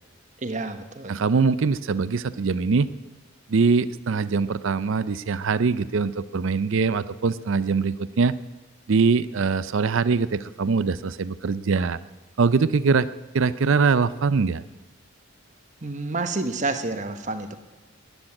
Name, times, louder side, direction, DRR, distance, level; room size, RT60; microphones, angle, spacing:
voice 1, 0.4-1.1 15.8-17.6, right 3 dB, 35° right, 8 dB, 1.2 m, -29 dB
voice 2, 1.1-2.9 3.5-8.3 8.9-12.0 12.4-13.1 13.3-14.6, right 4 dB, 65° right, 15 dB, 0.5 m, -22 dB
13.0 x 10.0 x 10.0 m, 1.2 s
head